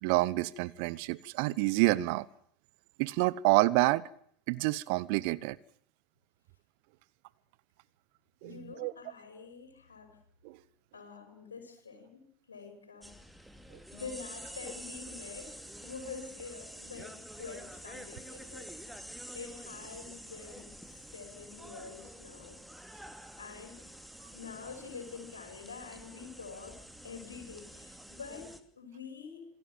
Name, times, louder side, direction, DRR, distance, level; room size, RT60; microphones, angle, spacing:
voice 1, 0.0-2.2 3.0-4.0 4.5-5.6 8.4-8.5 8.8-8.9 10.4-10.6, right 21 dB, 55° right, 1.0 m, -28 dB
voice 2, 8.4-10.2 10.9-12.2 12.5-13.2 13.9-18.7 19.3-22.6 23.4-23.9 24.3-29.5, left 5 dB, 80° left, 5.6 m, -46 dB
sound 1, 13.0-28.6, equal, ahead, 2.7 m, -48 dB
27.0 x 18.5 x 7.5 m
figure-of-eight pair, 80°, 0 cm